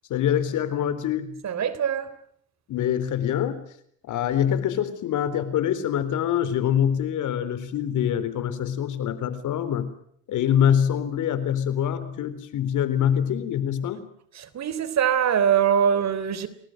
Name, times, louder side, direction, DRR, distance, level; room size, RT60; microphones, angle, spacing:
voice 1, 0.1-1.4 2.7-3.7 4.0-9.9 10.3-14.1, left 9 dB, 80° left, 3.9 m, -25 dB
voice 2, 1.4-2.1 14.4-16.5, right 8 dB, 60° right, 3.5 m, -23 dB
29.5 x 20.0 x 7.8 m
cardioid pair, 90°, 30 cm